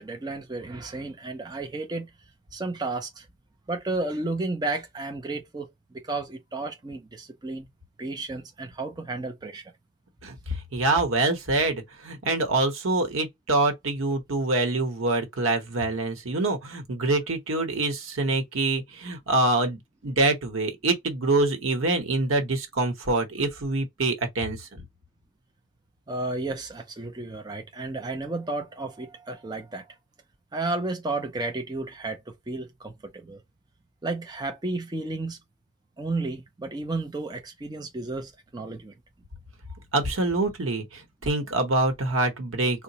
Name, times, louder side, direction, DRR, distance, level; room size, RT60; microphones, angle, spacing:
voice 1, 0.0-2.1 2.5-3.3 3.7-7.7 8.0-9.7 26.1-29.9 30.5-33.4 34.0-35.4 36.0-38.9, right 2 dB, 20° right, 0.4 m, -32 dB
voice 2, 10.2-24.8 39.9-42.8, right 2 dB, 90° right, 0.9 m, -25 dB
3.9 x 2.1 x 2.7 m
head